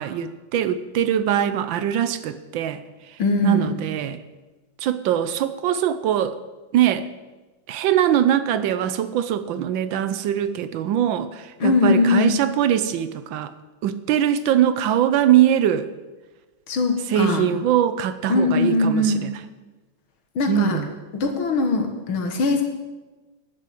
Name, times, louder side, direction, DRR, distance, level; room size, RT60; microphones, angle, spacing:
voice 1, 0.0-2.8 3.4-4.2 4.8-6.4 6.7-7.1 7.7-13.5 13.8-15.9 17.1-19.4 20.5-20.9, right 10 dB, 75° right, 12 dB, 1.3 m, -22 dB
voice 2, 3.2-3.7 11.6-12.3 16.7-17.5 18.3-19.2 20.4-20.8 21.1-22.6, left 2 dB, 80° left, 4 dB, 2.3 m, -20 dB
11.0 x 7.4 x 7.7 m, 1.2 s
omnidirectional pair, 2.2 m